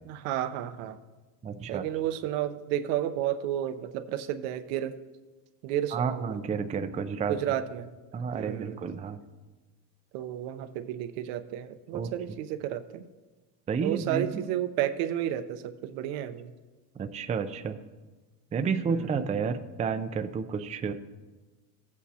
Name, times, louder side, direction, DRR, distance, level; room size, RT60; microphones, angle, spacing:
voice 1, 0.1-1.0 1.7-5.0 5.6-6.4 7.3-7.9 8.3-8.8 10.1-13.1 13.8-16.5 18.9-19.2, right 11 dB, 80° right, 9 dB, 0.8 m, -32 dB
voice 2, 1.4-1.8 5.9-7.4 8.1-9.2 11.9-12.1 13.7-14.4 17.0-17.8 18.5-20.9, right 6 dB, 15° right, 9 dB, 0.4 m, -31 dB
15.5 x 8.5 x 2.8 m, 1.2 s
supercardioid pair, 105°, 47 cm